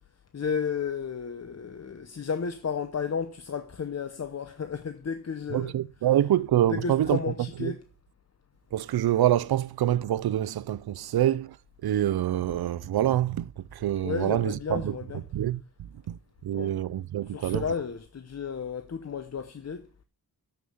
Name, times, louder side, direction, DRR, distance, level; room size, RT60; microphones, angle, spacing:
voice 1, 0.3-6.2 6.7-7.8 14.0-15.3 16.5-16.8 17.3-19.9, left 6 dB, 40° left, 0.8 m, -33 dB
voice 2, 5.5-7.2 8.7-11.6 11.8-14.9 15.3-15.6 16.1-16.2 16.4-17.7, right 12 dB, 75° right, 0.5 m, -26 dB
7.1 x 6.5 x 7.8 m
wide cardioid pair, 95°, 38 cm